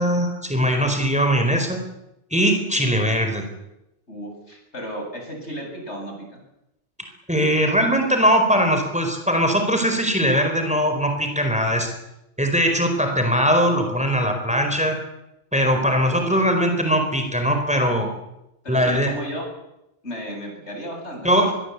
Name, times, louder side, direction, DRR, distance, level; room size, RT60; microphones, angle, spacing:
voice 1, 0.0-1.8 2.3-3.4 7.3-11.9 12.4-15.0 15.5-18.1 18.7-19.1 21.2-21.5, equal, 5° right, 5 dB, 4.7 m, -20 dB
voice 2, 4.1-6.4 18.6-19.4 20.0-21.5, equal, 80° left, 2 dB, 8.4 m, -34 dB
25.0 x 21.5 x 8.5 m, 0.88 s
omnidirectional pair, 1.1 m